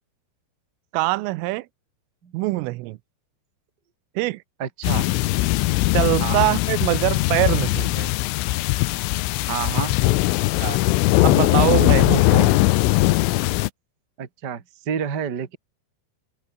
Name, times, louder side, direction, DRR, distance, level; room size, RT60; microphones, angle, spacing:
voice 1, 0.9-1.7 2.3-3.0 4.2-4.4 5.9-8.1 10.6-10.8 11.2-12.6, right 20 dB, 85° right, 3.4 m, -23 dB
voice 2, 4.6-5.1 6.2-6.5 9.5-9.9 14.2-15.6, right 7 dB, 55° right, 1.1 m, -29 dB
sound 1, 4.8-13.7, left 19 dB, 90° left, 3.4 m, -20 dB
open air
omnidirectional pair, 5.7 m